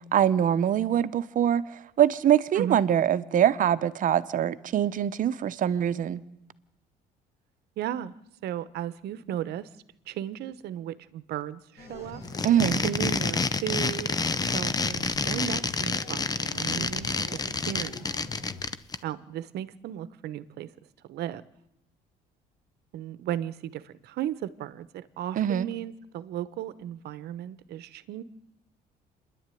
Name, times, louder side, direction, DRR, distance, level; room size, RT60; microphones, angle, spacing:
voice 1, 0.1-1.6 2.0-6.2 12.4-12.8 25.4-25.7, right 10 dB, 50° right, 1.0 m, -23 dB
voice 2, 7.8-8.1 8.4-9.7 10.1-12.2 12.8-18.0 19.0-20.7 21.1-21.4 22.9-28.2, right 11 dB, 75° right, 1.0 m, -35 dB
sound 1, 11.8-18.7, left 3 dB, 75° left, 4.1 m, -44 dB
sound 2, 12.2-19.0, left 4 dB, 20° left, 0.8 m, -28 dB
27.0 x 11.0 x 9.3 m
cardioid pair, 110°, 17 cm